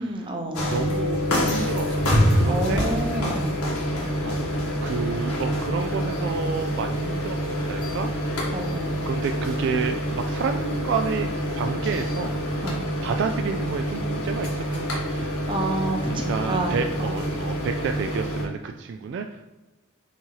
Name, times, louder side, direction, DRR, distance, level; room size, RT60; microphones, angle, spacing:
voice 1, 0.0-0.7 2.5-3.6 8.5-8.9 12.6-12.9 15.5-17.2, right 2 dB, 25° right, 2 dB, 0.8 m, -29 dB
sound 1, 0.5-18.4, equal, 85° left, 1.7 m, -26 dB
voice 2, 0.6-2.9 4.2-8.1 9.1-12.3 13.0-15.3 16.3-19.5, right 5 dB, 55° right, 6 dB, 0.3 m, -30 dB
7.2 x 2.8 x 4.7 m, 1.2 s
head